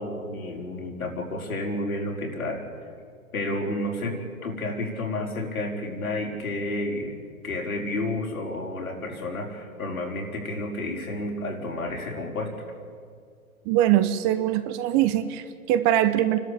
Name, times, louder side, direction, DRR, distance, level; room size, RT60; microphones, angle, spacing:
voice 1, 0.0-2.9 3.3-7.2 7.4-12.5, left 1 dB, 75° left, 0 dB, 5.0 m, -31 dB
voice 2, 13.7-16.4, right 12 dB, 25° right, 11 dB, 0.9 m, -22 dB
28.5 x 12.5 x 8.5 m, 2.2 s
figure-of-eight pair, 125°, 43 cm